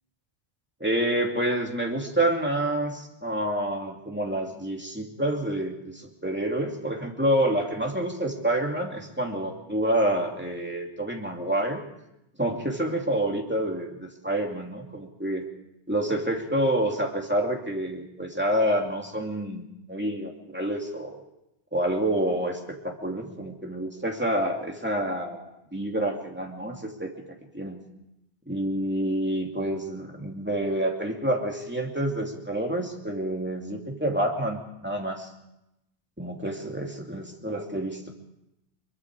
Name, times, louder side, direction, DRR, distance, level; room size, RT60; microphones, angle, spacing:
voice 1, 0.8-11.8 12.4-15.4 15.9-19.6 19.9-21.2 21.7-27.1 27.5-27.8 28.5-35.3 36.2-38.1, right 1 dB, 10° right, 1 dB, 2.7 m, -28 dB
24.0 x 23.0 x 4.8 m, 0.87 s
omnidirectional pair, 1.1 m